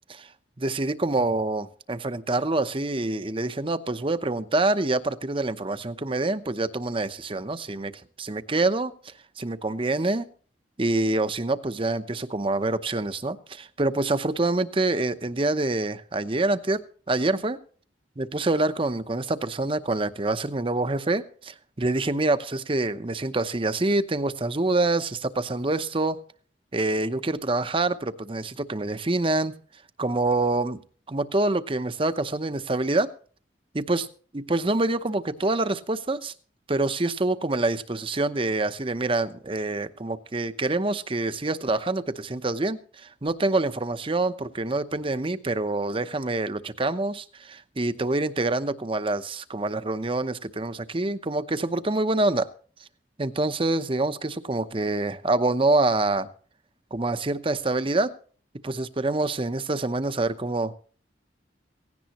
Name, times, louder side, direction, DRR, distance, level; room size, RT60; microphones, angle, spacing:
voice 1, 0.6-7.9 8.2-10.3 10.8-16.8 17.1-17.6 18.2-26.2 26.7-29.5 30.0-30.8 31.1-33.1 33.7-34.0 34.3-36.3 36.7-52.5 53.2-56.3 56.9-58.1 58.6-60.7, right 2 dB, 30° right, 12 dB, 0.8 m, -26 dB
17.0 x 16.5 x 3.0 m, 0.43 s
head